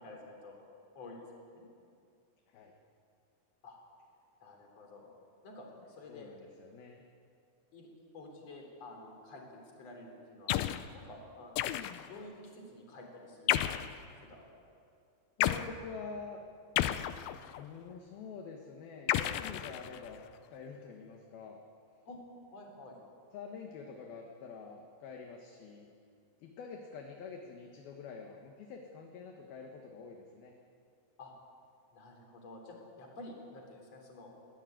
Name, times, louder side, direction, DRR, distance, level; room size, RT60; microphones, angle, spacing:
voice 1, 0.0-0.6 1.0-1.3 1.5-1.7 3.6-3.8 4.4-5.1 5.4-6.3 7.7-7.9 8.1-10.5 10.9-11.7 12.0-13.9 14.2-14.5 22.0-23.0 31.2-31.3 31.9-34.3, left 2 dB, 35° left, 1 dB, 4.3 m, -50 dB
voice 2, 6.1-7.0 15.4-16.4 17.6-20.2 20.5-21.6 23.3-25.9 26.4-30.5, left 5 dB, 65° left, 2 dB, 3.0 m, -46 dB
sound 1, 10.5-10.9 11.6-12.2 13.5-14.0 15.4-15.7 16.8-17.6 19.1-20.2, left 13 dB, 90° left, 2.1 m, -32 dB
21.5 x 16.5 x 9.2 m, 2.4 s
omnidirectional pair, 5.2 m